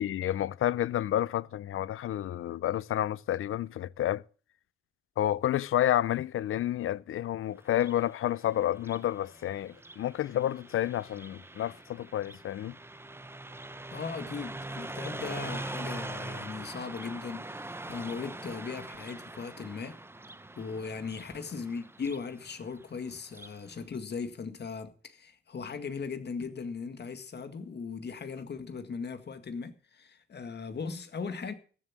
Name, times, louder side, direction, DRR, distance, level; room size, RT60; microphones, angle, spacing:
voice 1, 0.0-4.2 5.2-12.8, left 12 dB, 80° left, 0.5 m, -30 dB
Car passing by, 7.6-23.6, right 2 dB, 10° right, 0.7 m, -43 dB
voice 2, 13.9-20.0 20.6-31.5, left 5 dB, 55° left, 1.9 m, -38 dB
15.0 x 7.5 x 7.5 m
cardioid pair, 100°, 21 cm